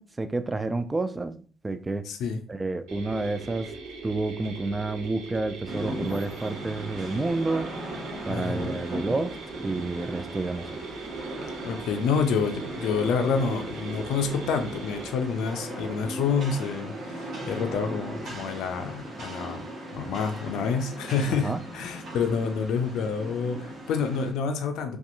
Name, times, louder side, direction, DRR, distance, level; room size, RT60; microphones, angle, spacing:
voice 1, 0.0-2.1 2.5-3.7 4.0-7.7 8.3-10.8 21.4-21.6, right 3 dB, 25° right, 11 dB, 0.3 m, -30 dB
voice 2, 2.0-2.4 8.3-8.7 11.6-19.6 19.9-25.0, left 5 dB, 75° left, 6 dB, 0.4 m, -28 dB
sound 1, 2.9-15.1, right 4 dB, 85° right, 0.6 m, -41 dB
Rain, 5.7-24.3, right 1 dB, 55° right, 1.0 m, -38 dB
2.6 x 2.3 x 2.5 m, 0.41 s
hypercardioid pair, 55°, 0 cm